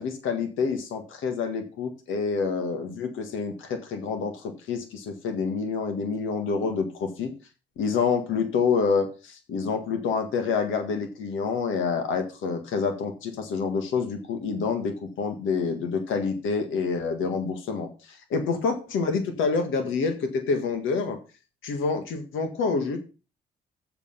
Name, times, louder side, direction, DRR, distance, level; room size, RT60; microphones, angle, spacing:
voice 1, 0.0-7.3 7.8-21.2 21.6-23.0, left 5 dB, 80° left, 6 dB, 1.8 m, -27 dB
7.3 x 6.7 x 5.7 m, 0.33 s
cardioid pair, 90°, 20 cm